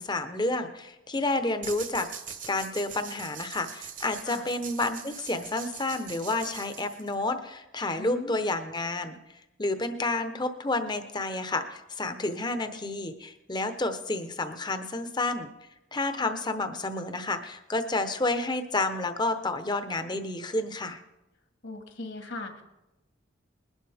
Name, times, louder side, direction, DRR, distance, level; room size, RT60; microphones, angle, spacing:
voice 1, 0.0-2.1 2.5-9.2 9.6-15.5 15.9-21.0, left 2 dB, 20° left, 8 dB, 0.9 m, -30 dB
sound 1, 1.6-7.3, right 8 dB, 40° right, 1.2 m, -42 dB
voice 2, 8.0-8.4 21.6-22.6, left 2 dB, 60° left, 4 dB, 2.0 m, -38 dB
21.0 x 11.5 x 3.5 m, 0.94 s
head